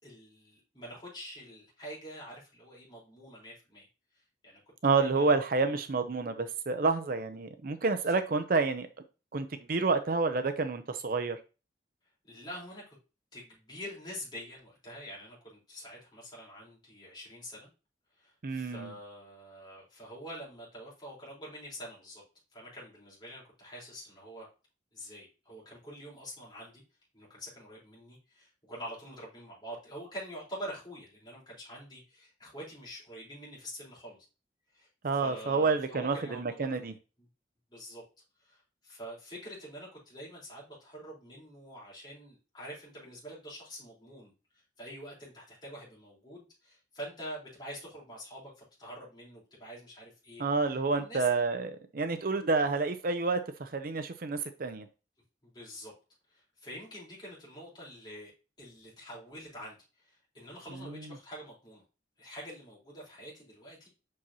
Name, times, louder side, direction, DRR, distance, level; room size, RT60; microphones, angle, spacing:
voice 1, 0.0-3.9 4.1-4.6 4.9-5.4 5.7-5.8 8.0-8.1 12.2-13.0 13.3-17.7 18.2-22.2 22.5-24.5 24.9-26.8 27.1-34.2 34.7-37.3 37.7-38.0 38.4-51.4 54.7-54.8 55.4-55.9 56.3-58.3 58.6-61.8 62.2-63.9, equal, 25° left, 3.9 m, -46 dB
voice 2, 4.8-8.9 9.3-11.4 18.4-18.9 35.0-36.9 50.4-54.8, right 4 dB, 50° right, 0.6 m, -29 dB
7.6 x 6.0 x 2.8 m
head